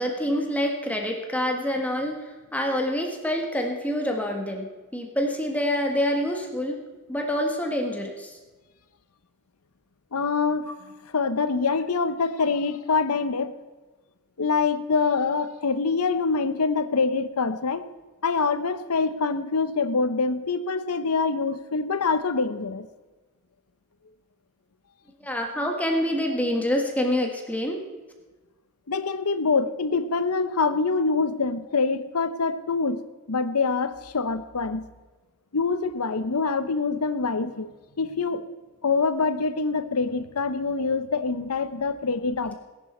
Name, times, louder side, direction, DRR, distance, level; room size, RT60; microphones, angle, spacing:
voice 1, 0.0-6.8 7.1-8.4 25.2-27.8, equal, 5° left, 2 dB, 1.4 m, -26 dB
voice 2, 10.1-10.7 11.1-13.5 14.4-17.9 18.2-22.9 28.9-33.0 33.3-34.8 35.5-37.7 38.0-38.4 38.8-42.6, left 4 dB, 80° left, 12 dB, 0.8 m, -25 dB
18.0 x 10.5 x 4.3 m, 1.3 s
head